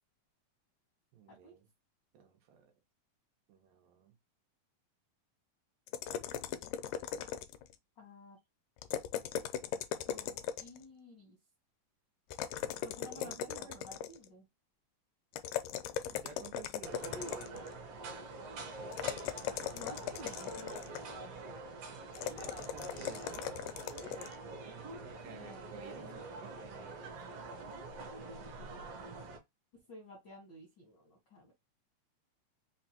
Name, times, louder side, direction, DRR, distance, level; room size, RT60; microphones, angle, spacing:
voice 1, 1.1-1.7 2.1-2.7 3.5-4.1 13.2-13.8 15.9-17.2 22.3-23.5 24.5-28.1, right 7 dB, 85° right, 2.6 m, -54 dB
sound 1, 5.9-7.8 8.8-10.8 12.3-14.3 15.3-17.7 18.9-21.1 22.1-24.4, left 10 dB, 80° left, 2.0 m, -39 dB
voice 2, 8.0-8.4 10.1-11.4 12.8-14.4 19.7-20.7 25.3-26.2 29.9-31.5, left 2 dB, 65° left, 1.1 m, -52 dB
sound 2, 16.8-29.4, right 3 dB, 65° right, 1.6 m, -45 dB
5.7 x 2.2 x 2.8 m
omnidirectional pair, 3.9 m